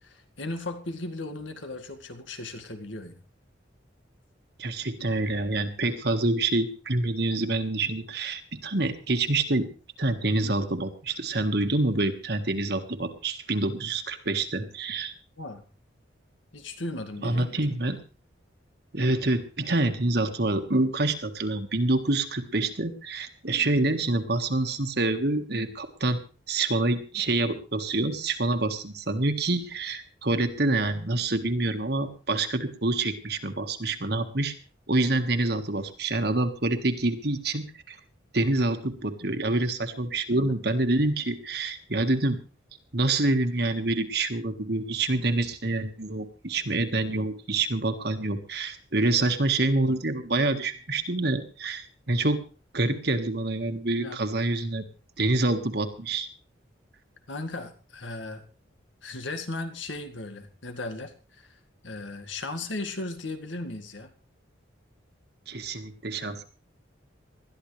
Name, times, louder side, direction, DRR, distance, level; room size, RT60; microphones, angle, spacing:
voice 1, 0.0-3.2 15.4-15.7 16.5-17.5 54.0-54.2 57.3-58.5 59.0-61.6 61.8-64.1, left 2 dB, 80° left, 7 dB, 2.0 m, -36 dB
voice 2, 4.6-9.7 10.0-15.1 17.2-18.0 18.9-26.2 26.5-34.5 34.9-38.0 38.3-42.4 42.9-52.4 52.7-54.8 55.2-56.3 65.5-66.4, right 2 dB, 55° right, 7 dB, 1.7 m, -27 dB
20.5 x 13.0 x 3.3 m, 0.34 s
head